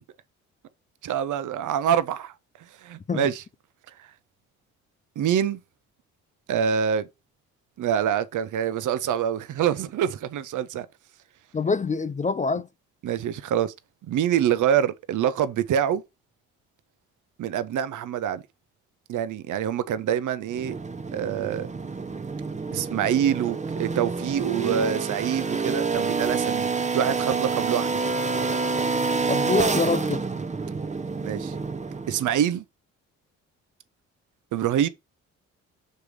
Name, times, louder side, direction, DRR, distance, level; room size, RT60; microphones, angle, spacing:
voice 1, 1.0-2.3 2.8-3.4 5.2-5.6 6.5-7.1 7.8-10.9 13.0-13.7 14.1-16.0 17.4-18.4 19.1-20.8 21.1-21.7 22.7-28.2 31.2-31.5 32.1-32.6 34.5-34.9, right 9 dB, 60° right, 0.9 m, -25 dB
voice 2, 11.5-12.7 29.3-30.2, left 4 dB, 20° left, 0.5 m, -25 dB
sound 1, 20.5-32.3, right 4 dB, 20° right, 0.8 m, -28 dB
6.7 x 3.2 x 5.1 m
hypercardioid pair, 55°, 34 cm